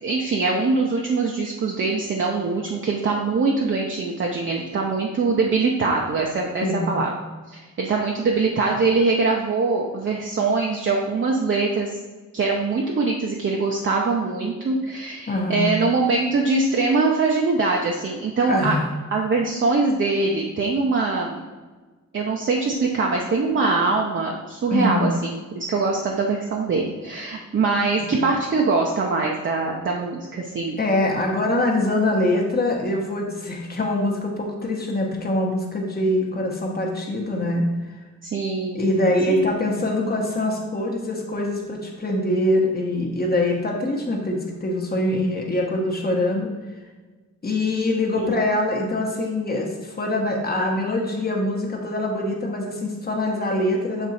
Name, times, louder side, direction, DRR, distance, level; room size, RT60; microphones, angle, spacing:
voice 1, 0.0-7.1 7.5-11.9 12.3-18.8 19.1-21.4 22.1-30.8 38.2-38.9 39.3-39.5 48.2-48.4, right 3 dB, 40° right, 0 dB, 0.6 m, -23 dB
voice 2, 6.6-6.9 15.3-15.7 18.5-18.9 24.7-25.1 28.0-28.2 30.8-37.7 38.7-46.5 47.4-54.1, left 1 dB, 30° left, -1 dB, 1.0 m, -24 dB
7.1 x 3.7 x 4.1 m, 1.3 s
wide cardioid pair, 140°, 30 cm